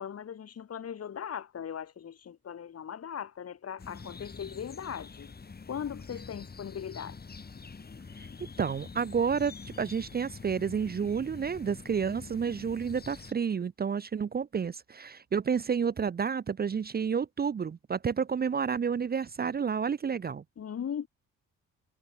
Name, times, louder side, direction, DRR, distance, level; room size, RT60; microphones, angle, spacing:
voice 1, 0.0-5.3 5.7-7.2 20.6-21.1, left 8 dB, 55° left, 3.8 m, -39 dB
sound 1, 3.8-13.3, left 4 dB, 30° left, 6.9 m, -46 dB
voice 2, 8.6-20.4, right 6 dB, 30° right, 0.7 m, -30 dB
cardioid pair, 90°, 30 cm